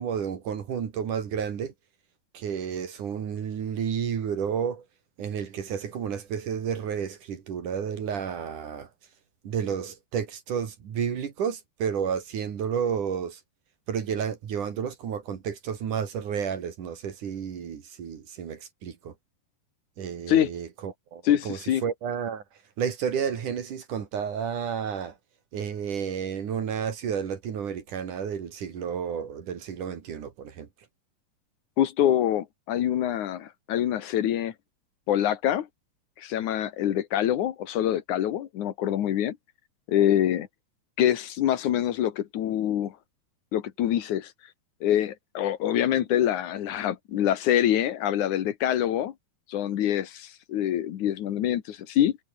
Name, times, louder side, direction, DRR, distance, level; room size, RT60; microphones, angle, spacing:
voice 1, 0.0-1.7 2.3-4.9 5.2-8.9 9.4-13.4 13.9-19.1 20.0-22.4 22.8-25.2 25.5-30.7, right 7 dB, 55° right, 3.6 m, -31 dB
voice 2, 21.3-21.8 31.8-34.5 35.1-35.7 36.2-39.4 39.9-40.5 41.0-43.0 43.5-44.3 44.8-49.1 49.5-52.2, left 11 dB, 60° left, 2.5 m, -25 dB
omnidirectional pair, 4.4 m